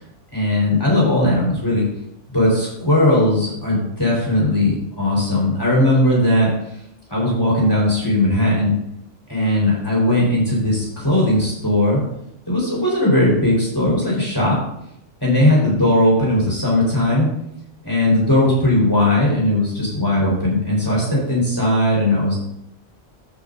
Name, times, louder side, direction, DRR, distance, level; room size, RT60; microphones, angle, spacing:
voice 1, 0.3-1.8 2.3-6.5 7.1-8.7 9.3-12.0 12.5-14.6 15.2-17.4 17.8-22.4, left 1 dB, 20° left, -5 dB, 4.3 m, -18 dB
13.5 x 8.0 x 2.7 m, 0.78 s
omnidirectional pair, 1.3 m